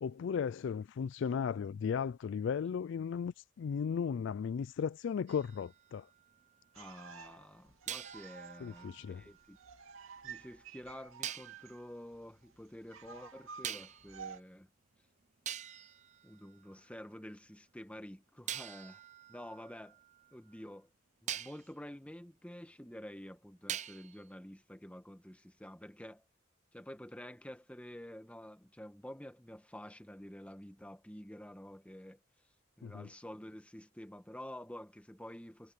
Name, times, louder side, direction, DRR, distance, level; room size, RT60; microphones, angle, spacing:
voice 1, 0.0-6.1 8.6-9.2 32.8-33.1, left 6 dB, 60° left, 0.3 m, -36 dB
sound 1, 5.3-6.7 7.9-10.0 11.2-11.6 13.6-14.2 15.0-15.1 15.5-17.1 18.5-20.6 21.3-21.7 23.7-24.3, right 10 dB, 35° right, 0.5 m, -45 dB
voice 2, 6.7-9.6 10.2-14.7 16.2-19.0 19.3-20.0 20.3-20.9 21.2-26.2 26.7-32.2 32.8-35.7, equal, 5° left, 1.4 m, -49 dB
sound 2, 6.7-14.4, right 6 dB, 85° right, 2.6 m, -52 dB
head